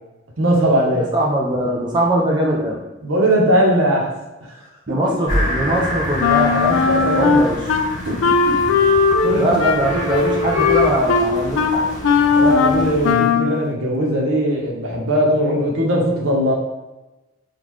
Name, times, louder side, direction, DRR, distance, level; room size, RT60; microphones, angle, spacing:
voice 1, 0.4-1.1 3.0-4.1 4.5-4.6 6.9-7.4 8.1-8.2 8.5-8.6 9.2-9.6 12.3-16.5, equal, 85° right, -2 dB, 0.9 m, -19 dB
voice 2, 1.1-2.8 4.9-7.6 9.3-11.9, right 1 dB, 20° right, -4 dB, 0.4 m, -21 dB
sound 1, 5.3-13.1, equal, 20° left, 0.9 m, -27 dB
Wind instrument woodwind instrument, 6.2-7.9 8.2-13.5, left 5 dB, 70° left, 0.3 m, -17 dB
3.6 x 2.4 x 3.1 m, 1.0 s
head